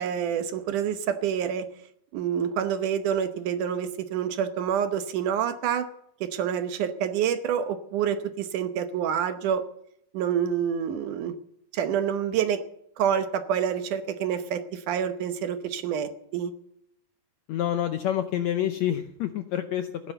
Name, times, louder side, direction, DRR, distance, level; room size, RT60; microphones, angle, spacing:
voice 1, 0.0-1.7 2.1-5.9 6.2-9.6 10.1-11.3 11.7-12.6 13.0-16.5, right 8 dB, 70° right, 10 dB, 2.3 m, -27 dB
voice 2, 17.5-20.1, left 11 dB, 75° left, 9 dB, 1.6 m, -28 dB
15.5 x 11.0 x 7.9 m, 0.72 s
omnidirectional pair, 4.1 m